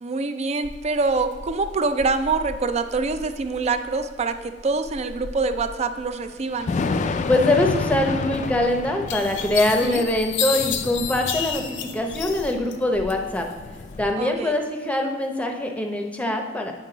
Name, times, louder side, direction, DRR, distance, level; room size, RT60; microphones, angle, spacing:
voice 1, 0.0-6.7 9.8-10.0 14.2-14.5, right 3 dB, 35° right, 9 dB, 0.4 m, -25 dB
Thunder / Rain, 0.6-14.1, left 3 dB, 40° left, 0.3 m, -32 dB
voice 2, 7.3-11.6 11.9-13.5 14.0-16.7, left 1 dB, 10° left, 3 dB, 0.7 m, -23 dB
sound 1, 8.4-8.5 9.1-12.8 13.1-13.8, left 8 dB, 90° left, 0.7 m, -30 dB
9.1 x 4.5 x 3.9 m, 1.5 s
head